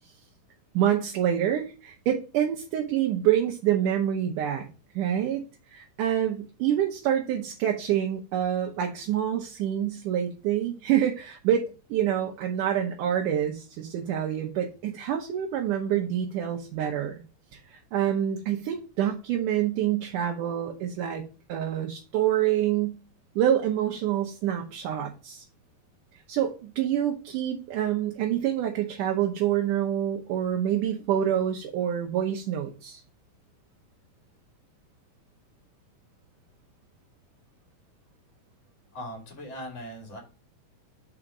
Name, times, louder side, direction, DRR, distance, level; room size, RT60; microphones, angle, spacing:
voice 1, 0.7-4.7 4.9-5.4 5.7-17.2 17.5-21.2 21.5-23.0 23.4-25.4 26.3-33.0, right 10 dB, 70° right, 1 dB, 2.2 m, -27 dB
voice 2, 38.9-40.2, equal, 25° left, 2 dB, 1.7 m, -39 dB
5.7 x 5.0 x 4.9 m, 0.34 s
omnidirectional pair, 4.3 m